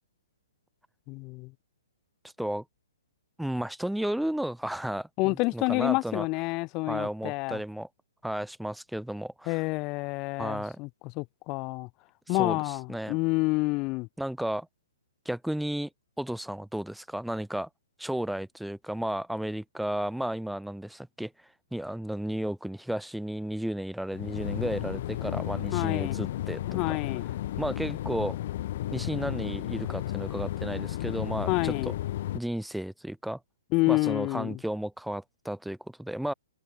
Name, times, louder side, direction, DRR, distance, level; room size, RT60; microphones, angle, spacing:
voice 1, 1.1-1.5 5.2-7.6 9.5-10.9 11.2-11.9 12.3-14.1 25.7-26.2 26.7-27.2 31.5-31.9 33.7-34.6, left 24 dB, 30° left, 1.4 m, -28 dB
voice 2, 3.4-6.3 6.9-7.9 8.2-9.6 10.4-10.8 12.3-13.2 14.2-14.7 15.3-15.9 16.2-17.7 18.0-21.3 21.7-27.0 27.6-28.4 28.9-31.9 32.3-33.4 33.9-36.3, right 1 dB, ahead, 3.6 m, -33 dB
sound 1, 24.1-32.4, left 13 dB, 50° left, 7.4 m, -33 dB
hypercardioid pair, 135°, 0 cm